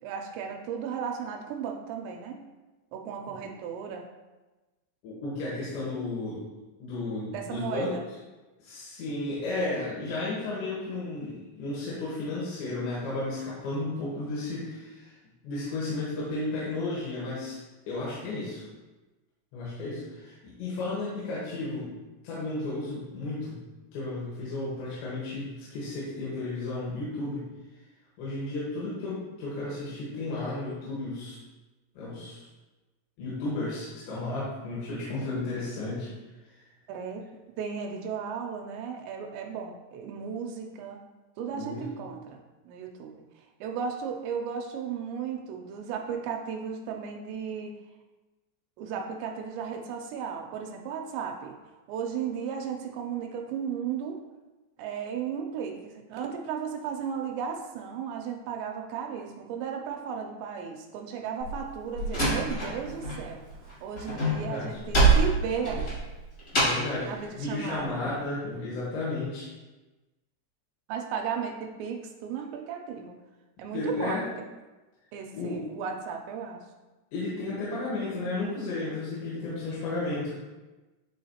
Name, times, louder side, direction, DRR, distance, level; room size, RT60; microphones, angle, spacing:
voice 1, 0.0-2.4 2.9-4.1 7.3-8.0 36.9-37.3 37.6-41.0 41.4-43.2 43.6-47.8 48.8-51.6 51.9-54.2 54.8-63.4 63.8-65.9 67.0-68.0 70.9-73.2 73.6-74.3 75.1-76.6, right 7 dB, 85° right, 2 dB, 2.7 m, -35 dB
voice 2, 5.0-6.4 6.8-7.9 8.6-15.1 15.4-17.6 17.9-18.7 19.5-21.9 22.2-23.6 23.9-27.5 28.2-31.4 32.0-32.5 33.2-36.1 36.4-36.5 41.6-41.9 64.2-64.8 66.5-69.5 73.7-74.3 75.3-75.7 77.1-80.4, left 2 dB, 80° left, -7 dB, 3.6 m, -33 dB
Slam, 61.4-63.2 63.5-67.0, right 3 dB, 55° left, 0.9 m, -25 dB
9.8 x 3.8 x 2.8 m, 1.2 s
omnidirectional pair, 5.1 m